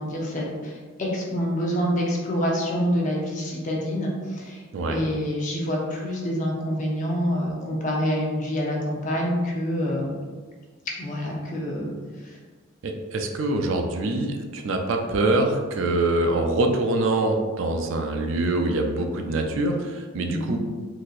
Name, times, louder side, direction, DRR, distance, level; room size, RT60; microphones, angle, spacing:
voice 1, 0.0-4.6 4.9-10.1 10.9-11.9 12.2-12.4 20.3-20.6, equal, 35° left, -2 dB, 0.6 m, -27 dB
voice 2, 4.7-5.0 12.8-20.6, right 2 dB, 65° right, 4 dB, 0.4 m, -24 dB
3.9 x 2.7 x 2.4 m, 1.5 s
head